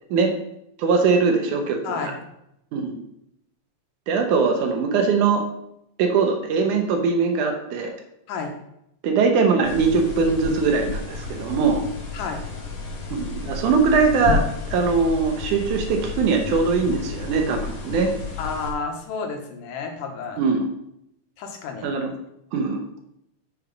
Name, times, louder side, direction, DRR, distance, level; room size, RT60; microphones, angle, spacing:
voice 1, 0.8-2.1 2.7-3.0 4.1-5.4 6.0-7.9 9.0-11.8 13.1-18.1 20.4-20.6 21.8-22.1 22.5-22.8, right 4 dB, 75° right, 4 dB, 2.4 m, -21 dB
voice 2, 1.8-2.2 8.3-8.5 12.1-12.4 18.4-20.4 21.4-21.9, left 5 dB, 90° left, 3 dB, 2.8 m, -31 dB
sound 1, 9.6-18.7, left 5 dB, 60° left, 2.9 m, -31 dB
6.7 x 5.9 x 5.2 m, 0.79 s
omnidirectional pair, 3.7 m